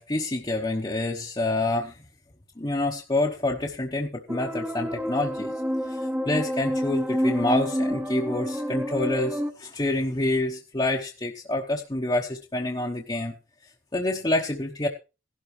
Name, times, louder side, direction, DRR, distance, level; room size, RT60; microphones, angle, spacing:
voice 1, 0.0-2.0 2.6-5.5 5.9-6.0 6.2-13.3 13.9-14.9, left 2 dB, 20° left, -1 dB, 1.0 m, -27 dB
sound 1, 4.3-9.5, equal, 10° right, 0.9 m, -28 dB
16.0 x 12.0 x 3.2 m, 0.31 s
head